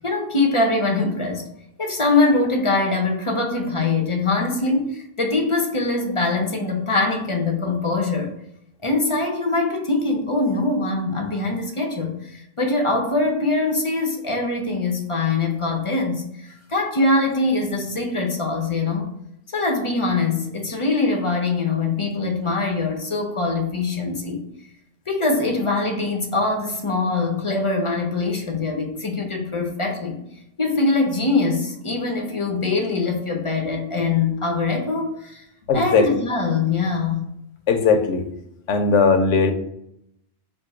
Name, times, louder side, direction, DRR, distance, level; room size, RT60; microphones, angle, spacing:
voice 1, 0.0-1.5 1.8-8.3 8.8-19.1 19.5-24.4 25.1-30.2 30.6-35.4 35.7-37.3, left 3 dB, 40° left, 2 dB, 0.5 m, -23 dB
voice 2, 35.7-36.1 37.7-38.2 38.7-39.5, left 5 dB, 80° left, 7 dB, 0.9 m, -18 dB
4.4 x 2.6 x 4.7 m, 0.78 s
omnidirectional pair, 1.2 m